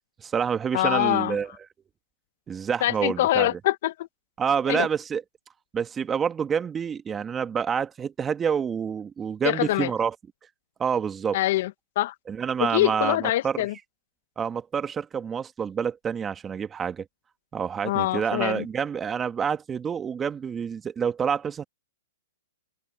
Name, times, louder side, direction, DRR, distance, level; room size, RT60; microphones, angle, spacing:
voice 1, 0.2-1.5 2.5-3.6 4.4-5.2 5.7-10.1 10.8-11.4 12.3-13.6 14.4-17.0 17.5-21.6, right 7 dB, 15° right, 1.6 m, -27 dB
voice 2, 0.7-1.4 2.8-4.1 4.7-4.9 9.4-9.9 11.3-12.1 12.6-13.7 17.8-18.6, left 15 dB, 55° left, 1.6 m, -24 dB
open air
hypercardioid pair, 130°, 0 cm